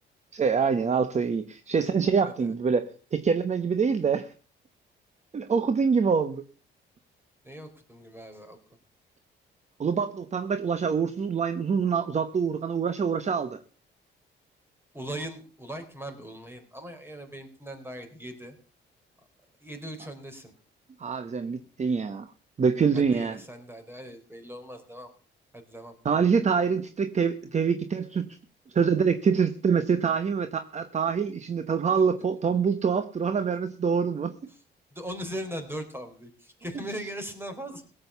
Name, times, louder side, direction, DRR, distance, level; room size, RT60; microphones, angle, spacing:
voice 1, 0.3-4.3 5.3-6.4 9.8-13.6 21.0-22.3 22.6-23.4 26.0-28.3 28.7-34.3, right 6 dB, 35° right, 11 dB, 1.0 m, -25 dB
voice 2, 2.2-2.5 7.4-8.6 14.9-18.6 19.6-20.5 22.9-25.1 25.5-26.0 34.5-34.6 34.9-37.8, equal, 10° right, 7 dB, 4.0 m, -39 dB
17.0 x 7.8 x 6.8 m, 0.40 s
cardioid pair, 90°, 20 cm